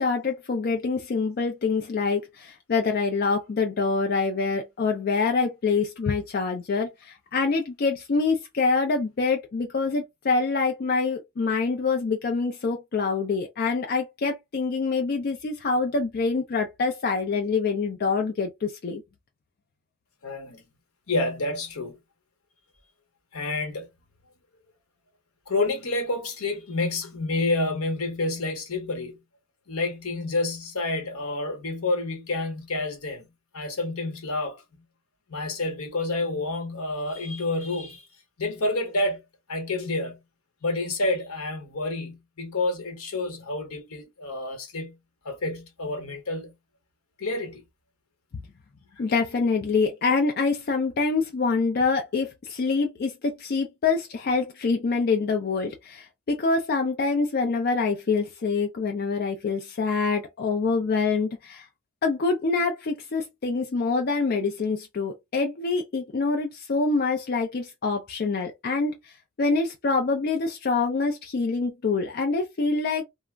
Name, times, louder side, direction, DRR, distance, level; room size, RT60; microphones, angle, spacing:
voice 1, 0.0-19.0 49.0-61.7 62.0-73.0, left 4 dB, 45° left, 0.4 m, -25 dB
voice 2, 20.2-20.6 21.1-22.0 23.3-23.9 25.5-29.2 29.7-33.3 33.5-34.6 35.3-38.1 38.4-39.2 39.5-40.2 40.6-45.0 45.2-46.5 47.2-47.6, left 2 dB, 75° left, 0.9 m, -29 dB
2.4 x 2.0 x 3.2 m
head